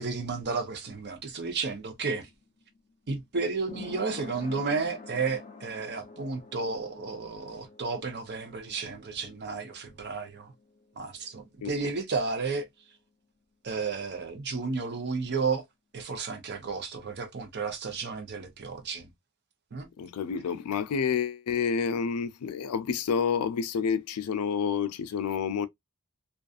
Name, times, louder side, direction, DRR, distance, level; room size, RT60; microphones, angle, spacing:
voice 1, 0.0-2.3 3.1-10.5 11.0-12.7 13.6-15.6 15.9-19.1 19.7-19.9, right 4 dB, 50° right, 0.6 m, -32 dB
sound 1, 0.8-12.1 12.4-12.5, left 3 dB, 30° left, 0.5 m, -49 dB
voice 2, 20.0-25.7, left 6 dB, 80° left, 0.4 m, -29 dB
2.5 x 2.3 x 2.3 m
head